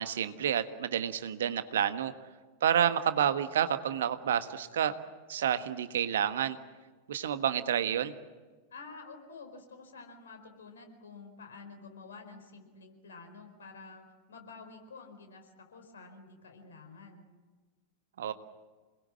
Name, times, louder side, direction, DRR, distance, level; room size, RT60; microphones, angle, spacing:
voice 1, 0.0-2.1 2.6-4.9 5.3-6.6 7.1-8.1 18.2-18.3, right 9 dB, 60° right, 11 dB, 1.4 m, -29 dB
voice 2, 8.7-17.2, left 4 dB, 65° left, 5 dB, 4.8 m, -50 dB
28.0 x 21.0 x 7.5 m, 1.3 s
figure-of-eight pair, 90°, 0 cm